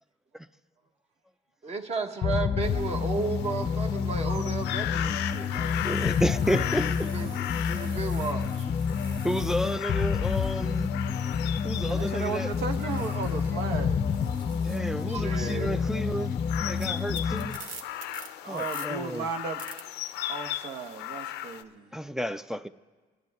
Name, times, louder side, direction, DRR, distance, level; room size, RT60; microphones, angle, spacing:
voice 1, 1.6-5.9 6.6-8.7 11.2-11.3 15.0-15.8, right 4 dB, 40° right, 1.3 m, -34 dB
sound 1, 2.2-17.6, left 6 dB, 40° left, 0.6 m, -29 dB
sound 2, 2.5-2.8 3.5-13.7 13.9-18.9 19.6-19.8, right 4 dB, 55° right, 1.4 m, -50 dB
sound 3, 2.6-21.6, left 12 dB, 85° left, 0.6 m, -38 dB
voice 2, 5.8-7.1 9.2-10.9 11.6-12.5 14.6-16.4 16.7-17.6 18.5-19.3 21.9-22.7, equal, 5° right, 0.3 m, -31 dB
voice 3, 11.9-14.1 18.4-19.6 20.3-21.9, right 5 dB, 75° right, 1.1 m, -35 dB
28.5 x 10.5 x 3.5 m
cardioid pair, 110°, 17 cm